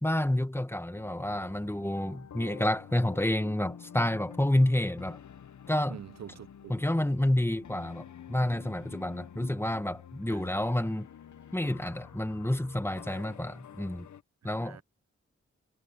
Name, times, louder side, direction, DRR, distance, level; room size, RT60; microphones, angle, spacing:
voice 1, 0.0-5.2 5.7-6.0 6.7-11.1 11.5-14.1 14.4-14.8, left 1 dB, 10° left, 1.3 m, -29 dB
sound 1, 0.9-14.2, left 8 dB, 80° left, 1.0 m, -49 dB
voice 2, 5.9-6.7 10.3-10.4 14.4-14.8, right 9 dB, 65° right, 0.6 m, -46 dB
cardioid pair, 65°, 29 cm